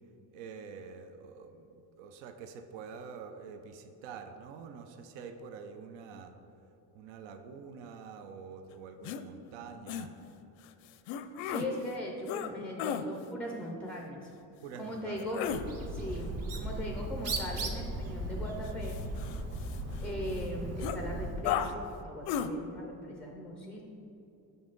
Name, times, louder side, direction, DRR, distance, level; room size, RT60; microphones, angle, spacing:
voice 1, 0.3-6.3 6.9-10.1 14.5-15.6, right 5 dB, 90° right, 7 dB, 0.6 m, -46 dB
sound 1, 9.0-9.2 9.9-10.1 11.1-11.7 12.3-12.5 12.8-13.0 15.2-15.6 18.6-20.0 20.3-20.4 20.8-21.0 21.4-21.7 22.3-22.5, left 9 dB, 85° left, 0.5 m, -34 dB
voice 2, 11.4-14.3 14.8-15.4 15.9-19.0 20.0-23.8, left 1 dB, 5° left, 0 dB, 0.3 m, -39 dB
Bird, 15.5-21.4, right 1 dB, 35° right, 0.7 m, -37 dB
6.8 x 5.4 x 3.8 m, 3.0 s
cardioid pair, 145°, 42 cm